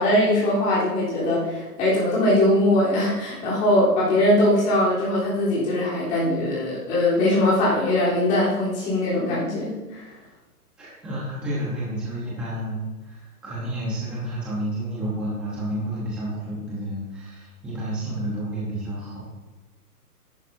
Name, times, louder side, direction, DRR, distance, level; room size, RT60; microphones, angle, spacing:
voice 1, 0.0-10.1, left 1 dB, 15° left, -8 dB, 3.5 m, -21 dB
voice 2, 10.8-19.2, right 1 dB, ahead, -8 dB, 0.9 m, -30 dB
13.0 x 11.0 x 2.7 m, 1.2 s
hypercardioid pair, 165°, 47 cm